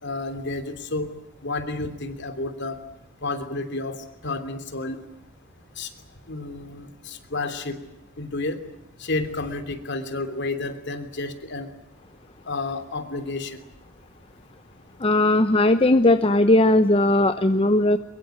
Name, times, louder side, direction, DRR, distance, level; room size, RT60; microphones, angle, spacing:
voice 1, 0.0-1.1 1.4-2.8 3.2-5.0 5.8-5.9 6.3-7.8 8.2-8.6 9.0-11.7 12.4-13.6, left 2 dB, 55° left, 8 dB, 3.1 m, -31 dB
voice 2, 15.0-18.0, left 1 dB, 25° left, 10 dB, 0.9 m, -18 dB
23.5 x 23.0 x 9.2 m, 0.93 s
head